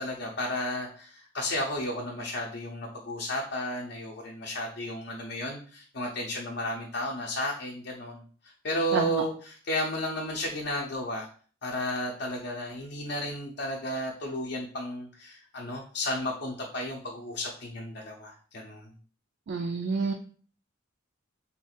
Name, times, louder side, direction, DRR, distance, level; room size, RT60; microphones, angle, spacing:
voice 1, 0.0-11.3 11.6-18.9, left 1 dB, 55° left, -2 dB, 0.6 m, -33 dB
voice 2, 8.9-9.2 19.5-20.1, right 4 dB, 55° right, 3 dB, 0.3 m, -28 dB
3.5 x 2.4 x 4.3 m, 0.42 s
head